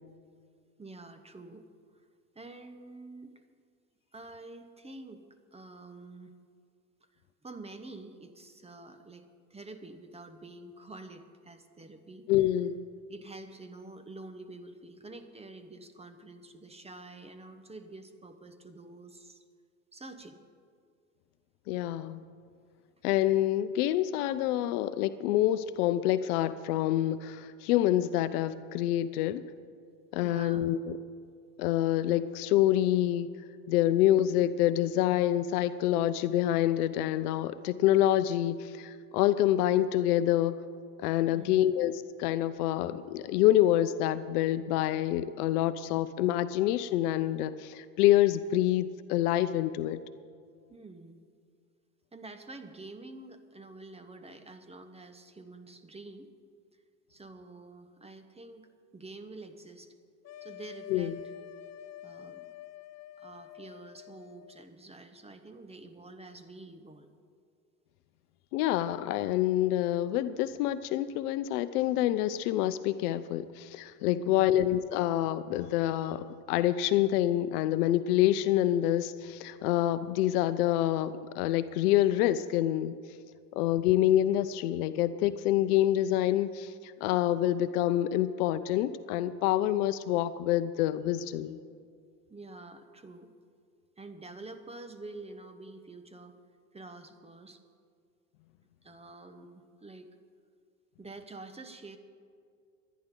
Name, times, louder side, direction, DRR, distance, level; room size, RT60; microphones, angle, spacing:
voice 1, 0.8-1.7 1.9-2.1 2.3-3.4 4.1-5.2 5.5-6.3 7.4-12.3 13.1-19.4 19.9-20.4 30.2-30.7 41.3-41.7 50.7-51.2 52.1-56.3 57.1-59.9 60.4-61.2 62.0-62.5 63.2-67.1 74.2-74.6 92.3-93.3 94.0-96.4 96.7-97.6 98.8-100.2 101.0-102.0, right 2 dB, 15° right, 8 dB, 1.2 m, -47 dB
voice 2, 12.3-12.8 21.7-22.2 23.0-29.5 30.1-30.9 31.6-33.3 33.7-40.6 41.0-50.0 60.9-61.1 68.5-82.9 83.5-86.7 87.0-91.6, left 13 dB, 70° left, 14 dB, 0.8 m, -27 dB
sound 1, 60.2-64.6, left 10 dB, 35° left, 0.6 m, -48 dB
25.5 x 10.5 x 3.9 m, 2.2 s
hypercardioid pair, 85°, 47 cm